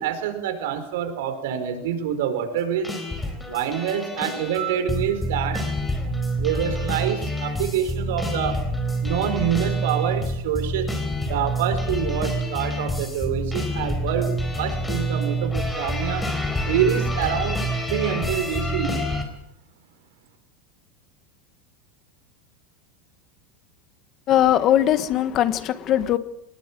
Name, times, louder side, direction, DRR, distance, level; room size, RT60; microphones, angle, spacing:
voice 1, 0.0-2.9 3.5-5.7 6.4-8.6 9.0-10.9 11.2-16.3 16.7-17.6 17.9-19.1, right 9 dB, 70° right, 8 dB, 5.0 m, -26 dB
sound 1, 2.8-19.2, equal, 5° left, 4.3 m, -27 dB
voice 2, 24.3-26.2, left 11 dB, 30° left, 11 dB, 1.4 m, -20 dB
24.0 x 20.5 x 7.6 m, 0.79 s
supercardioid pair, 165°, 0 cm